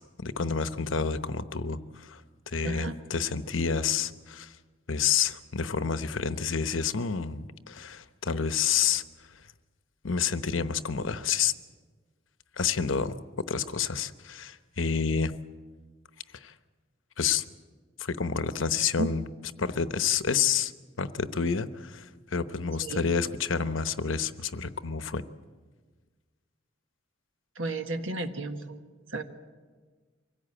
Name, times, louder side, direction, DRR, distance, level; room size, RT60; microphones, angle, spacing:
voice 1, 0.2-2.2 2.5-4.5 4.9-9.0 10.0-11.5 12.6-15.4 16.3-16.5 17.2-17.4 18.0-19.2 19.6-20.7 21.0-25.2, left 6 dB, 80° left, 12 dB, 0.9 m, -29 dB
voice 2, 2.6-3.0 19.0-19.1 22.8-23.0 27.5-29.2, right 2 dB, 85° right, 7 dB, 1.6 m, -33 dB
24.5 x 16.5 x 8.8 m, 1.4 s
head